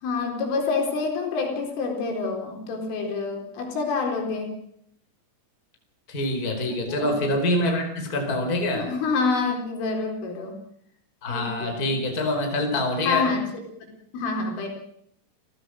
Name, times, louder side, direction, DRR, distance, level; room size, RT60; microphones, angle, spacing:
voice 1, 0.0-4.5 6.7-7.2 8.7-10.5 11.3-11.8 13.0-13.4 14.1-14.7, left 4 dB, 70° left, 3 dB, 6.6 m, -27 dB
voice 2, 6.1-8.9 11.2-13.3, left 1 dB, 20° left, 4 dB, 4.8 m, -25 dB
29.5 x 16.0 x 6.5 m, 0.70 s
omnidirectional pair, 5.9 m